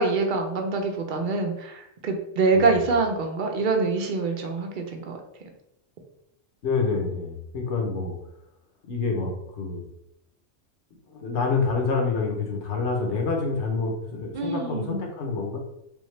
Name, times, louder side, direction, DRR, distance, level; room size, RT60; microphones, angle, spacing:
voice 1, 0.0-5.2 14.3-15.1, right 3 dB, 50° right, 3 dB, 0.7 m, -25 dB
voice 2, 6.6-8.2 8.9-9.8 11.1-15.6, left 4 dB, 65° left, 1 dB, 1.2 m, -27 dB
3.6 x 3.5 x 3.2 m, 0.81 s
omnidirectional pair, 1.3 m